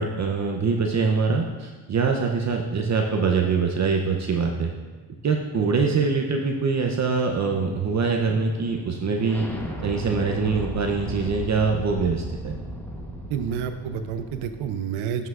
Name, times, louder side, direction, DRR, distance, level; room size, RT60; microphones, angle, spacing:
voice 1, 0.0-4.7 5.2-9.5 9.8-12.6, right 4 dB, 35° right, 2 dB, 0.7 m, -24 dB
sound 1, 4.9-14.8, right 1 dB, 5° left, 1.0 m, -37 dB
voice 2, 13.3-15.3, right 8 dB, 80° right, 9 dB, 0.7 m, -29 dB
11.0 x 5.7 x 2.4 m, 1.3 s
cardioid pair, 90°, 48 cm